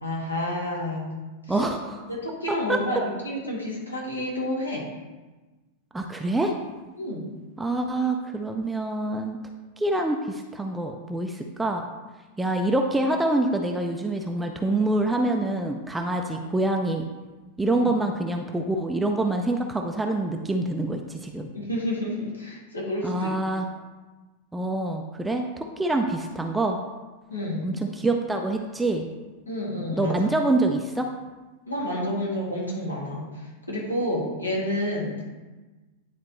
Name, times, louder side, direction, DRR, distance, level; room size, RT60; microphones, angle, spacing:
voice 1, 0.0-1.1 1.5-1.6 2.1-4.9 7.0-7.3 17.7-17.9 21.5-23.3 27.3-27.7 29.5-30.2 31.7-35.2, left 1 dB, 80° left, -4 dB, 1.8 m, -30 dB
voice 2, 1.5-2.0 2.5-2.8 5.9-6.5 7.6-9.4 9.8-11.9 12.4-17.1 17.6-21.5 23.0-23.7 24.5-26.8 27.6-29.1 30.0-31.1, right 2 dB, 10° right, 3 dB, 0.5 m, -26 dB
9.6 x 4.1 x 3.0 m, 1.2 s
figure-of-eight pair, 90°, 0 cm